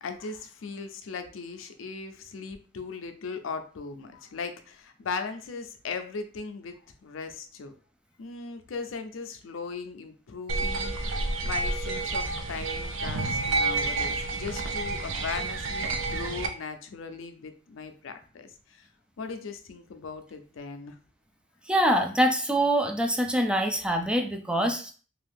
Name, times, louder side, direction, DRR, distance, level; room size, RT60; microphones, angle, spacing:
voice 1, 0.0-7.7 8.2-18.9 19.2-21.0, left 5 dB, 85° left, 8 dB, 0.5 m, -38 dB
sound 1, 10.5-16.5, right 3 dB, 75° right, 0.4 m, -29 dB
voice 2, 21.7-24.9, right 1 dB, 5° right, 4 dB, 0.3 m, -24 dB
2.6 x 2.3 x 3.4 m, 0.40 s
head